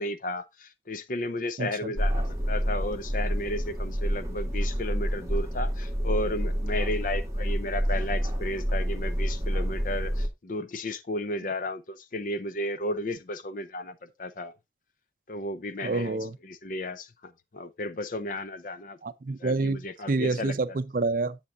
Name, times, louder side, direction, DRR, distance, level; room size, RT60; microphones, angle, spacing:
voice 1, 0.0-14.5 15.3-16.2 16.5-17.1 17.5-19.0 19.4-20.5, left 1 dB, 50° left, 0.6 m, -33 dB
voice 2, 1.6-1.9 15.8-16.4 19.0-21.4, right 3 dB, 50° right, 0.5 m, -28 dB
sound 1, 2.0-10.3, equal, 20° right, 1.3 m, -28 dB
9.8 x 7.4 x 2.5 m
head